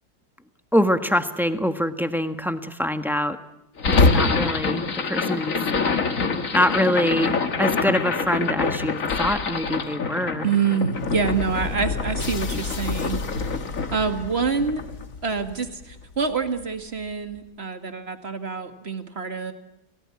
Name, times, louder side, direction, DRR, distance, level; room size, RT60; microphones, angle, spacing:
voice 1, 0.7-3.4 3.9-5.6 6.5-10.5, equal, ahead, 8 dB, 1.2 m, -24 dB
sound 1, 3.8-16.0, left 4 dB, 45° left, 2.0 m, -25 dB
voice 2, 10.4-13.5 13.9-14.8 15.2-19.5, right 5 dB, 35° right, 8 dB, 2.2 m, -26 dB
30.0 x 18.0 x 9.9 m, 0.87 s
omnidirectional pair, 2.0 m